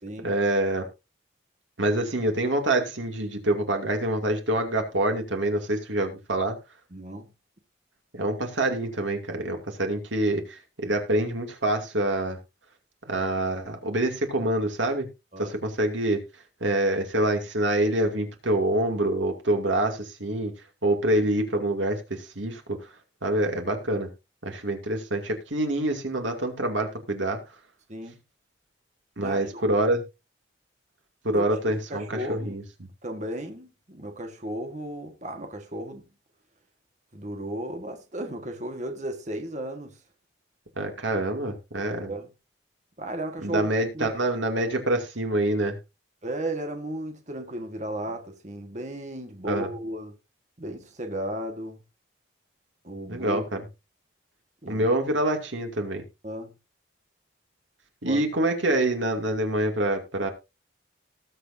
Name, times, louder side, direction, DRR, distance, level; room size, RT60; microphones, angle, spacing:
voice 1, 0.2-0.9 1.8-6.6 8.1-12.4 13.1-15.1 15.4-16.2 16.6-20.5 20.8-22.8 23.2-24.1 24.4-27.4 29.2-30.0 31.2-32.6 40.8-42.1 43.4-45.8 49.4-49.7 53.1-53.6 54.7-56.0 58.0-60.3, right 1 dB, 85° right, 2.6 m, -26 dB
voice 2, 6.9-7.3 15.3-15.5 27.9-28.2 29.2-29.6 31.3-31.4 31.9-32.6 33.0-36.0 37.1-40.0 42.1-42.3 43.0-43.7 43.9-44.1 46.2-50.1 50.6-51.8 52.8-53.4 54.6-54.9 56.2-56.5 58.0-58.2, right 1 dB, 40° right, 1.6 m, -34 dB
19.0 x 6.6 x 2.7 m
head